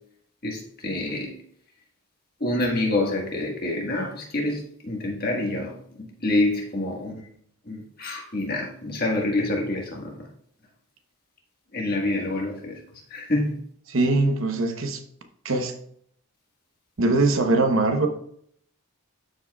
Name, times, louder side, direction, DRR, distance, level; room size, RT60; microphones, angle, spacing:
voice 1, 0.4-1.3 2.4-7.2 7.7-10.1 11.7-12.8 13.1-13.6, left 2 dB, 45° left, 1.5 m, -27 dB
voice 2, 13.9-15.0 15.4-15.7 17.0-18.1, right 2 dB, 65° right, 0.9 m, -21 dB
12.5 x 4.9 x 2.3 m
head